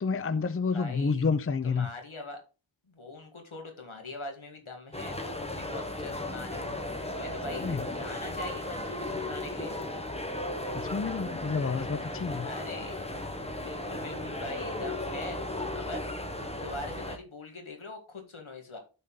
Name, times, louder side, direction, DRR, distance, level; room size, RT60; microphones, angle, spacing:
voice 1, 0.0-1.9 7.6-7.8 10.7-12.5, left 5 dB, 30° left, 0.5 m, -29 dB
voice 2, 0.7-1.2 1.6-2.4 2.9-9.8 12.4-13.0 13.6-16.0 16.6-18.8, left 2 dB, 85° left, 1.9 m, -42 dB
sound 1, 4.9-17.2, left 1 dB, 15° left, 1.1 m, -35 dB
12.0 x 4.1 x 3.8 m
wide cardioid pair, 55°, 47 cm